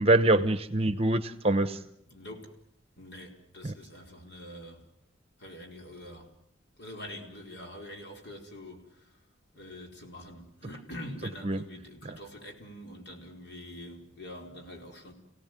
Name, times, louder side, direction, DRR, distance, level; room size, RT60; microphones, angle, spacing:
voice 1, 0.0-1.8 3.6-3.7 11.4-11.6 12.0-12.2, right 2 dB, 30° right, 1.0 m, -24 dB
voice 2, 1.7-2.6 3.0-4.8 5.4-6.3 6.8-9.1 9.5-15.1, left 1 dB, 55° left, 4.7 m, -45 dB
30.0 x 17.5 x 9.2 m
head